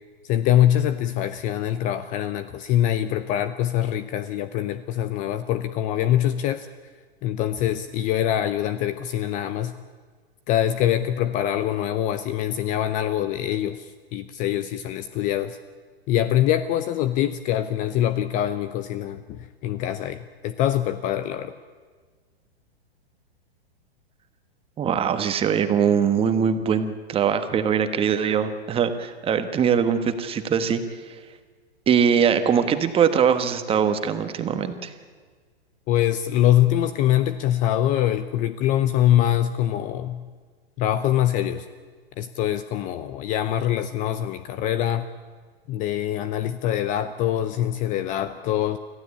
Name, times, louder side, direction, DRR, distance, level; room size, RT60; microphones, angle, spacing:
voice 1, 0.2-6.7 7.2-9.7 10.5-15.6 16.1-21.5 35.9-40.2 40.8-41.6 42.2-45.1 45.7-48.8, left 12 dB, 25° left, 13 dB, 0.6 m, -24 dB
voice 2, 24.8-30.8 31.9-34.9, right 7 dB, 15° right, 9 dB, 1.3 m, -22 dB
25.0 x 15.5 x 8.5 m, 1.5 s
hypercardioid pair, 140°, 32 cm